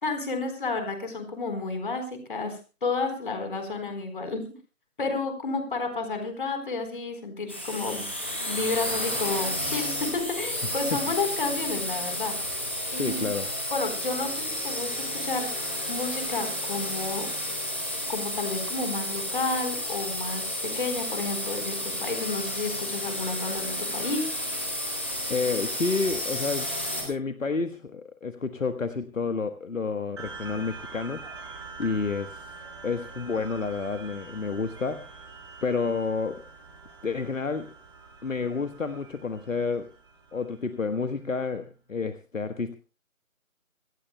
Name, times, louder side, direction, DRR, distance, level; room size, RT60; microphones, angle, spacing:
voice 1, 0.0-2.6 2.8-4.4 5.0-8.0 8.5-12.3 12.9-13.3 13.7-17.3 18.1-24.3, left 3 dB, 40° left, 6 dB, 4.1 m, -31 dB
sound 1, 7.5-27.0, left 1 dB, 10° left, 1.0 m, -31 dB
voice 2, 12.9-13.5 25.3-26.7 27.0-31.2 31.8-32.5 32.8-35.3 35.6-36.4 37.0-37.7 38.2-39.9 40.3-42.7, left 4 dB, 65° left, 9 dB, 1.3 m, -30 dB
sound 2, 30.2-41.0, right 4 dB, 20° right, 2.4 m, -44 dB
25.5 x 15.0 x 2.2 m, 0.34 s
figure-of-eight pair, 165°, 42 cm